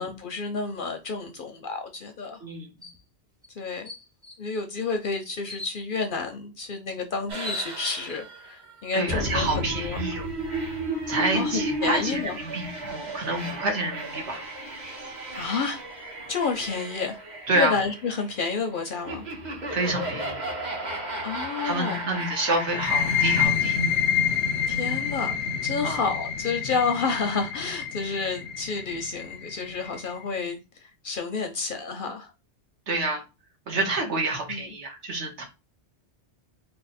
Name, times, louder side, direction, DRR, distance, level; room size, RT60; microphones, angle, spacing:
voice 1, 0.0-2.4 3.6-3.9 4.4-10.0 11.3-12.4 15.3-15.8 16.3-17.2 17.5-19.2 21.2-22.0 24.7-25.4 25.6-32.3 34.5-34.7, left 4 dB, 60° left, 0.6 m, -30 dB
voice 2, 2.4-2.7 8.9-10.2 11.1-14.4 17.5-17.8 19.7-20.4 21.6-23.8 25.8-26.1 32.9-33.2 33.7-35.4, right 2 dB, 75° right, 1.3 m, -28 dB
sound 1, 2.8-3.0 3.4-3.5 3.9-4.4 5.4-5.8 6.9-7.0 7.3-8.2, left 2 dB, 5° right, 0.4 m, -38 dB
sound 2, 7.3-23.4, right 1 dB, 40° right, 1.0 m, -34 dB
sound 3, 22.7-30.1, left 7 dB, 90° left, 0.9 m, -27 dB
3.4 x 2.1 x 4.0 m
omnidirectional pair, 1.2 m